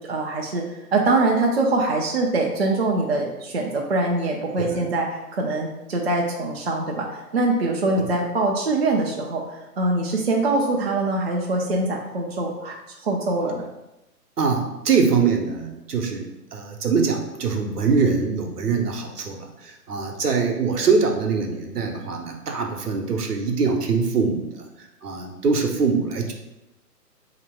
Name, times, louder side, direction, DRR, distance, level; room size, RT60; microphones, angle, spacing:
voice 1, 0.0-13.6, right 2 dB, 40° right, 0 dB, 0.5 m, -23 dB
voice 2, 4.6-4.9 14.4-24.6 25.0-26.3, right 5 dB, 70° right, 2 dB, 0.9 m, -23 dB
3.2 x 2.9 x 4.5 m, 0.95 s
figure-of-eight pair, 135°, 48 cm